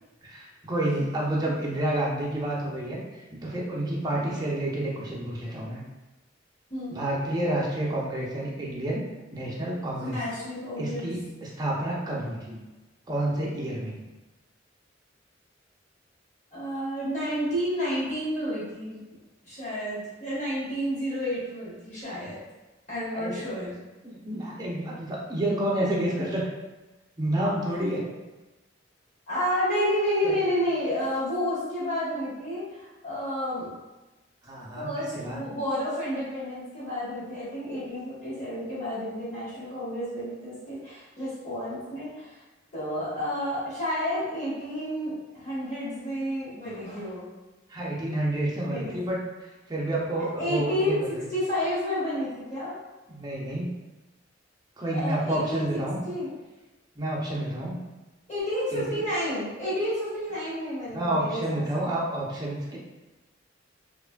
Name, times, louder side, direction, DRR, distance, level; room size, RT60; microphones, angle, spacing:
voice 1, 0.2-5.8 6.9-9.0 9.3-10.2 10.8-12.6 13.1-13.9 23.1-23.5 24.0-26.4 27.2-28.0 30.2-30.4 34.4-35.4 47.7-49.2 49.7-51.1 53.1-53.7 54.8-56.0 57.0-57.8 58.7-59.0 60.9-62.8, right 1 dB, 20° right, -5 dB, 0.6 m, -29 dB
voice 2, 6.7-7.1 10.0-11.1 16.5-19.0 19.4-22.4 22.9-23.8 29.3-33.7 34.7-42.3 42.7-47.3 48.6-49.0 50.2-51.0 51.3-52.7 54.9-55.6 56.0-56.3 58.3-61.6, equal, 40° left, -9 dB, 1.3 m, -30 dB
2.9 x 2.5 x 2.2 m, 1.1 s
head